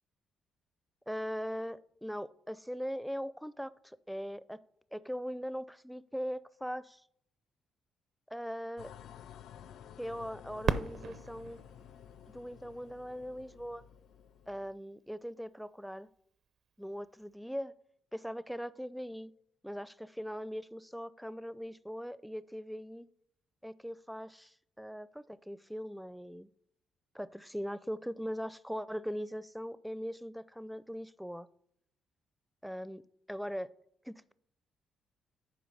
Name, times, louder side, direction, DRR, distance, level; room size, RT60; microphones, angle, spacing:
voice 1, 1.1-4.6 4.9-7.0 8.3-8.9 10.0-11.6 12.3-13.8 14.5-16.1 16.8-17.8 18.1-19.3 19.6-23.1 23.6-26.5 27.1-31.5 32.6-33.7 34.0-34.3, equal, ahead, 16 dB, 0.4 m, -40 dB
sound 1, 8.8-14.8, left 9 dB, 80° left, 0.4 m, -53 dB
Fireworks, 10.6-13.4 14.1-14.2 14.9-15.3 17.2-17.3, right 6 dB, 65° right, 0.6 m, -37 dB
10.5 x 4.6 x 5.5 m, 0.70 s
cardioid pair, 90°, 0 cm